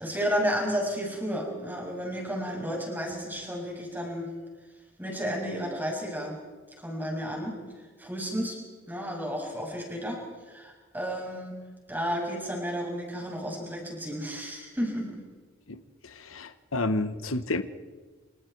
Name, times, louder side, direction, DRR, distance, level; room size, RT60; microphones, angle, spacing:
voice 1, 0.0-4.3 5.0-6.4 6.8-7.5 8.0-8.6 8.9-10.2 10.5-11.6 11.9-15.2, equal, 10° right, -1 dB, 7.1 m, -32 dB
voice 2, 15.7-17.6, left 2 dB, 90° left, 10 dB, 1.2 m, -31 dB
28.5 x 27.0 x 4.7 m, 1.4 s
head